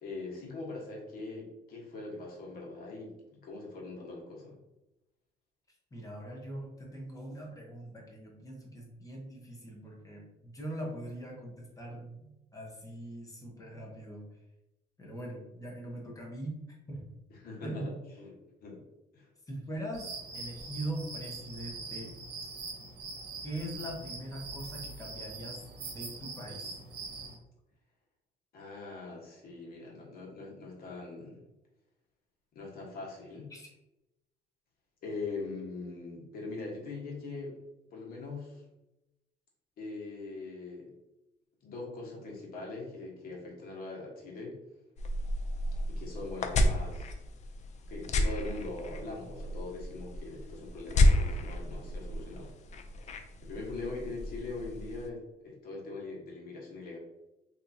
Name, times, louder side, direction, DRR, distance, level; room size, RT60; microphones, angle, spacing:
voice 1, 0.0-4.6 17.3-17.9 18.2-18.3 18.6-18.8 19.1-19.3 28.5-31.4 32.5-33.5 35.0-37.5 37.9-38.6 39.8-40.9 41.6-44.6 45.9-47.2 47.9-52.5 53.4-57.0, left 3 dB, 60° left, -3 dB, 1.3 m, -42 dB
voice 2, 5.9-14.3 15.0-16.6 16.9-17.1 17.6-17.9 19.5-22.1 23.4-26.8 33.5-33.7, right 1 dB, 20° left, -1 dB, 1.0 m, -41 dB
sound 1, 19.9-27.3, right 3 dB, 70° right, 0.9 m, -43 dB
sound 2, 45.0-55.1, left 1 dB, 45° left, 0.4 m, -31 dB
3.4 x 2.9 x 2.7 m, 0.94 s
cardioid pair, 110°, 17 cm